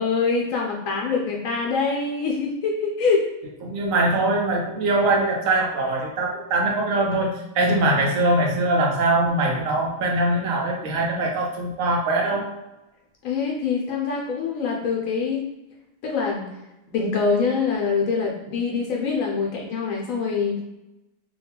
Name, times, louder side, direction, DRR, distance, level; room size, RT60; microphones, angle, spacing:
voice 1, 0.0-3.2 13.2-15.4 16.0-16.5 16.9-20.6, left 5 dB, 80° left, -1 dB, 1.0 m, -24 dB
voice 2, 3.6-12.5, right 2 dB, 85° right, 0 dB, 1.1 m, -22 dB
3.0 x 2.2 x 2.8 m, 0.95 s
omnidirectional pair, 1.4 m